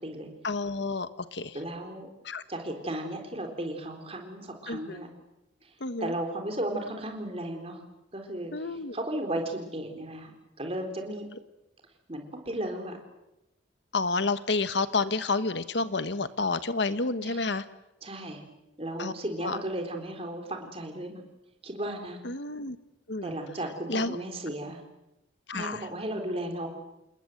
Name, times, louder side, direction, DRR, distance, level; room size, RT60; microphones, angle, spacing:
voice 1, 0.4-1.6 2.2-2.4 4.7-5.0 5.8-6.1 8.5-9.0 13.9-17.6 19.0-19.1 19.4-19.6 22.2-22.8 23.1-23.3 23.9-24.2 25.5-25.9, left 3 dB, 65° left, 12 dB, 1.3 m, -30 dB
voice 2, 1.5-2.1 2.5-5.1 5.6-5.7 6.0-7.8 8.1-8.5 8.9-10.3 10.6-11.3 12.1-13.0 17.2-17.4 18.0-18.4 18.8-21.2 21.6-22.2 23.2-24.8 25.5-26.7, right 1 dB, 30° right, 4 dB, 3.9 m, -35 dB
28.0 x 20.5 x 7.9 m, 0.93 s
head